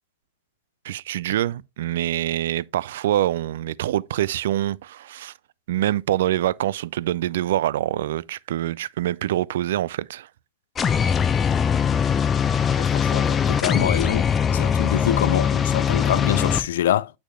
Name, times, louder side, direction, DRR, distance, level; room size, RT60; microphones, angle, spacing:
voice 1, 0.8-5.3 5.7-10.3, right 13 dB, 60° right, 0.3 m, -25 dB
sound 1, 10.8-16.6, left 7 dB, 20° left, 0.7 m, -21 dB
voice 2, 12.8-14.3 14.5-17.1, left 11 dB, 60° left, 0.4 m, -25 dB
9.2 x 6.1 x 2.3 m
figure-of-eight pair, 90°, 0 cm